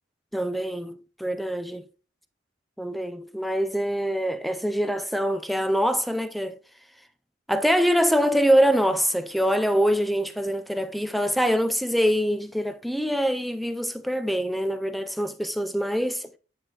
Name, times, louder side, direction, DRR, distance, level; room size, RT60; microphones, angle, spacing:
voice 1, 0.3-1.9 2.8-6.6 7.5-16.3, equal, ahead, 0.4 m, -24 dB
9.6 x 6.4 x 2.9 m
head